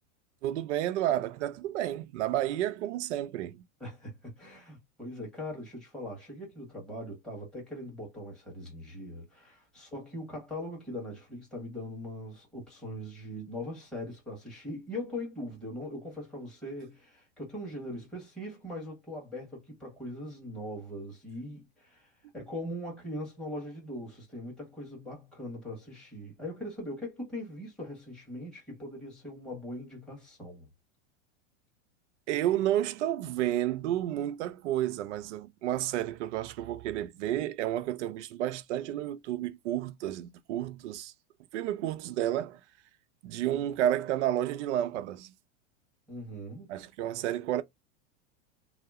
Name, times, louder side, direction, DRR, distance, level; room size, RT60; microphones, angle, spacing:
voice 1, 0.4-3.7 32.3-41.1 41.5-42.6 43.2-45.3 46.7-47.6, right 12 dB, 70° right, 0.6 m, -31 dB
voice 2, 3.8-30.7 46.1-46.7, left 1 dB, ahead, 1.3 m, -41 dB
2.8 x 2.0 x 3.4 m
supercardioid pair, 130°, 38 cm